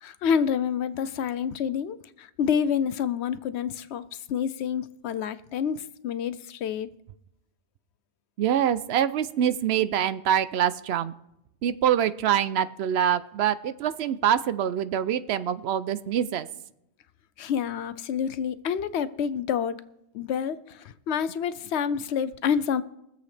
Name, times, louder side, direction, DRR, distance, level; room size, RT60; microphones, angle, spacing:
voice 1, 0.0-6.9 17.4-19.8 20.1-22.8, left 7 dB, 80° left, 0.9 m, -28 dB
voice 2, 8.4-11.1 11.6-16.5, right 10 dB, 75° right, 0.8 m, -25 dB
23.0 x 7.7 x 3.3 m
omnidirectional pair, 1.1 m